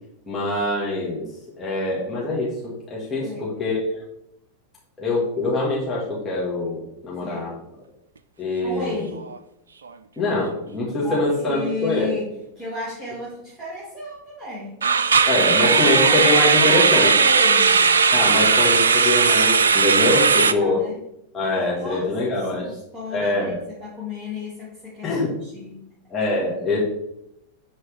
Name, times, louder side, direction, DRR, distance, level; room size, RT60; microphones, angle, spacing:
voice 1, 0.3-1.2 1.6-3.8 5.0-7.5 8.4-9.1 10.2-12.1 15.3-17.1 18.1-20.8 21.3-22.7 23.1-23.5 25.0-25.3 26.1-26.8, left 2 dB, 15° left, -7 dB, 2.3 m, -24 dB
voice 2, 3.2-3.5 7.2-7.6 8.6-9.3 11.0-15.3 15.6-17.9 20.2-21.0 21.5-25.9, left 2 dB, 10° right, -10 dB, 2.8 m, -33 dB
sound 1, 8.6-8.9 9.2-9.4 9.9-10.0 14.8-20.5, right 5 dB, 70° right, 0.3 m, -17 dB
9.9 x 4.2 x 3.7 m, 0.81 s
figure-of-eight pair, 90°, 0 cm